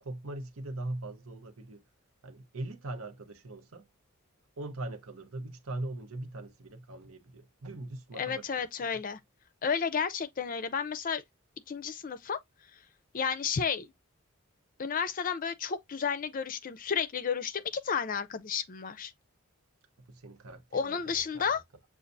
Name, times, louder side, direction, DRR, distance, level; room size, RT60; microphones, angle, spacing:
voice 1, 0.0-1.8 2.2-3.9 4.6-8.7 8.9-9.0 20.0-21.6, right 2 dB, 90° right, 0.9 m, -41 dB
voice 2, 8.2-9.2 9.6-11.2 11.7-12.4 13.1-13.9 14.8-19.1 20.7-21.6, left 6 dB, 40° left, 0.4 m, -32 dB
6.9 x 2.4 x 2.6 m
head